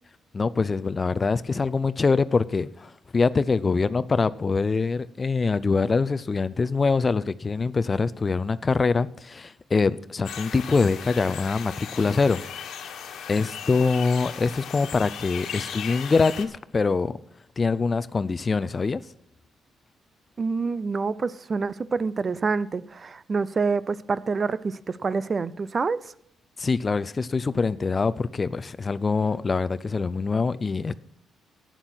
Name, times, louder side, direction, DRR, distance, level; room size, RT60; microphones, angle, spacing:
voice 1, 0.3-12.4 13.3-17.1 17.6-19.0 26.6-30.9, left 4 dB, 30° left, 0.5 m, -24 dB
Birds Ambience Soft, 10.2-16.5, left 8 dB, 70° left, 1.4 m, -37 dB
voice 2, 20.4-26.1, right 4 dB, 35° right, 0.5 m, -27 dB
11.5 x 9.1 x 6.3 m
cardioid pair, 90°, 0 cm